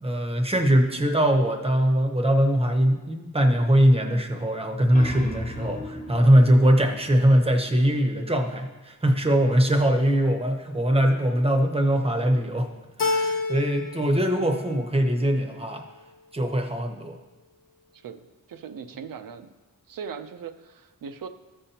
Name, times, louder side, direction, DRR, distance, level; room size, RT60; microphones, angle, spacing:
voice 1, 0.0-12.7 13.0-15.9 16.3-17.2, equal, 20° right, 4 dB, 0.7 m, -21 dB
sound 1, 4.6-8.1, equal, 25° left, 0.8 m, -38 dB
Keyboard (musical), 13.0-14.1 14.4-15.2, left 3 dB, 85° left, 0.7 m, -28 dB
voice 2, 17.9-19.5 19.9-21.3, right 6 dB, 85° right, 9 dB, 0.6 m, -39 dB
14.0 x 5.5 x 2.8 m, 1.2 s
wide cardioid pair, 175°, 32 cm